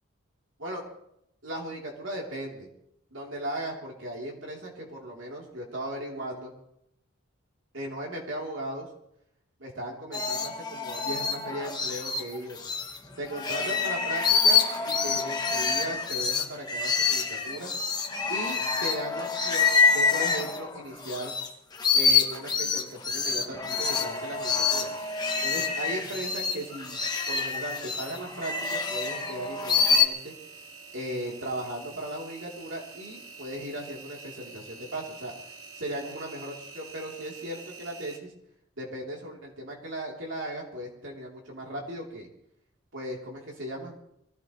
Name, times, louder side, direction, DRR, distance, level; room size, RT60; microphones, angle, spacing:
voice 1, 1.4-2.7 3.1-6.5 7.7-8.9 9.6-12.6 13.2-17.7 18.3-21.3 21.9-24.9 25.4-30.3 30.9-35.3 35.7-38.3 38.8-42.3 42.9-43.9, right 1 dB, 60° right, -2 dB, 3.6 m, -37 dB
sound 1, 10.1-13.0 13.3-21.5 21.7-30.0, left 5 dB, 20° left, 1.1 m, -26 dB
sound 2, 14.3-16.6, right 2 dB, 35° right, 1.2 m, -47 dB
Engine, 23.9-38.2, right 4 dB, 80° right, 2.7 m, -47 dB
24.5 x 16.5 x 3.3 m, 0.77 s
head